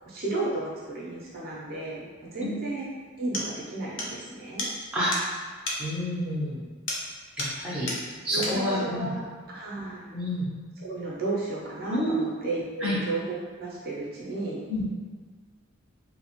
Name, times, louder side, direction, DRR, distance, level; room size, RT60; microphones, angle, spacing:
voice 1, 0.0-2.9 3.2-4.7 8.3-10.1 10.8-14.6, right 2 dB, 45° right, -6 dB, 0.6 m, -33 dB
sound 1, 2.8-2.9 3.3-3.5 4.0-4.1 4.6-4.7 5.1-5.3 5.7-5.8 6.9-7.1 7.4-7.6 7.9-8.0 8.4-8.6, left 1 dB, 60° left, 0.5 m, -32 dB
voice 2, 5.8-6.6 7.4-7.9 8.2-9.1 10.1-10.5 11.9-12.3 12.8-13.0 14.7-14.8, equal, 5° right, -10 dB, 0.6 m, -28 dB
2.9 x 2.1 x 2.9 m, 1.5 s
head